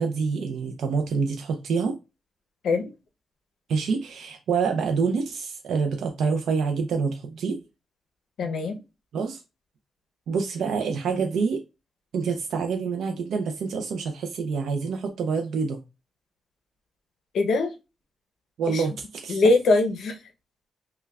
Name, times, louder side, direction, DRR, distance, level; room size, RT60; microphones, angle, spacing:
voice 1, 0.0-2.0 3.7-7.6 8.4-8.5 9.1-9.4 10.3-11.6 12.1-15.8 18.6-19.4, right 5 dB, 85° right, 0.4 m, -27 dB
voice 2, 8.4-8.8 17.3-17.7 18.7-18.8 19.3-20.2, left 3 dB, 75° left, 0.6 m, -22 dB
5.4 x 2.2 x 2.3 m
wide cardioid pair, 150°, 0 cm